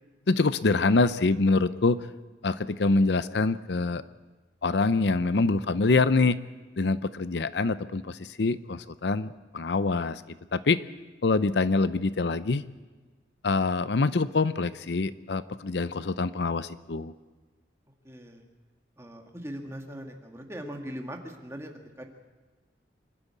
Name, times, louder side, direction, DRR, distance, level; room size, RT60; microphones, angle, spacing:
voice 1, 0.3-2.1 2.4-4.0 4.6-6.4 6.8-10.2 10.5-10.8 11.2-12.6 13.4-17.1, left 3 dB, 70° left, 14 dB, 0.6 m, -25 dB
voice 2, 18.0-18.4 19.0-21.7 22.0-22.1, equal, 15° right, 2 dB, 1.9 m, -40 dB
26.5 x 12.0 x 8.4 m, 1.3 s
head